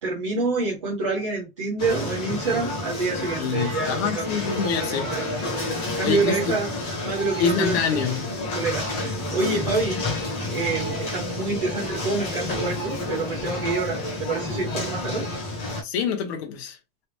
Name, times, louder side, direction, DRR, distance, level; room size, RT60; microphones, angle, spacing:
voice 1, 0.0-4.3 4.8-5.2 5.9-6.7 7.0-8.0 8.5-10.0 10.5-15.3, right 3 dB, 25° right, 0.3 m, -27 dB
sound 1, 1.8-15.8, left 2 dB, 20° left, 1.0 m, -30 dB
voice 2, 3.4-5.1 6.0-6.8 7.4-8.3 15.8-16.8, left 6 dB, 45° left, 0.9 m, -26 dB
3.3 x 2.4 x 2.9 m
supercardioid pair, 170°, 44 cm